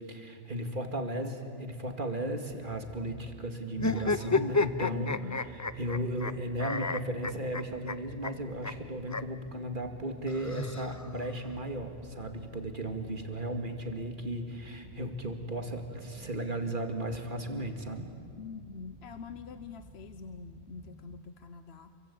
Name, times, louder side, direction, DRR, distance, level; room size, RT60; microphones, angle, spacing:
voice 1, 0.0-5.1 5.5-18.1, right 1 dB, 40° right, 5 dB, 2.4 m, -35 dB
sound 1, 2.5-21.2, right 1 dB, 25° right, 2.2 m, -52 dB
sound 2, 3.8-6.3 6.6-7.9 8.2-8.3 8.6-8.7 9.1-9.2 10.3-11.3, left 3 dB, 25° left, 0.4 m, -31 dB
voice 2, 4.8-5.4 18.4-21.9, left 5 dB, 60° left, 10 dB, 1.1 m, -45 dB
28.5 x 23.5 x 8.6 m, 2.2 s
omnidirectional pair, 1.3 m